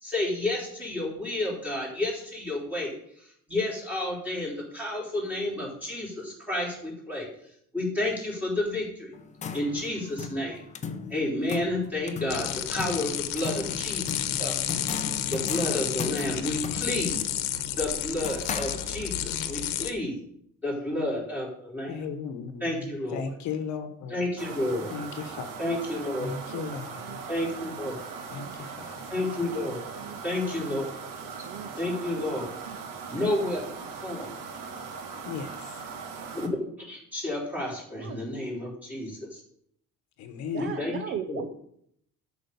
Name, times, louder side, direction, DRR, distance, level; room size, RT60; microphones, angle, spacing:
voice 1, 0.0-2.9 3.2-7.3 7.7-9.1 9.5-10.6 11.1-14.6 15.3-17.2 17.8-20.1 20.6-22.0 22.6-23.2 24.1-24.9 25.6-26.3 27.3-28.0 29.1-29.9 30.2-30.9 31.8-32.5 33.1-33.7 34.0-34.3 36.3-36.5 36.8-39.4 40.6-41.0 41.3-41.4, left 1 dB, 5° right, -5 dB, 3.7 m, -31 dB
sound 1, 9.1-19.3, left 6 dB, 20° left, 0.7 m, -38 dB
sound 2, 12.3-19.9, left 11 dB, 75° left, 1.1 m, -31 dB
voice 2, 21.9-22.6 23.1-24.2 24.9-25.5 26.2-27.2 28.3-29.0 35.3-35.5 40.2-40.7, left 6 dB, 60° left, 8 dB, 1.1 m, -35 dB
sound 3, 24.4-36.5, right 5 dB, 70° right, 1.6 m, -40 dB
voice 3, 31.2-31.7 32.7-32.8 37.9-38.2 40.5-41.5, right 8 dB, 40° right, 9 dB, 0.6 m, -38 dB
12.5 x 5.2 x 6.9 m, 0.69 s
cardioid pair, 165°, 33 cm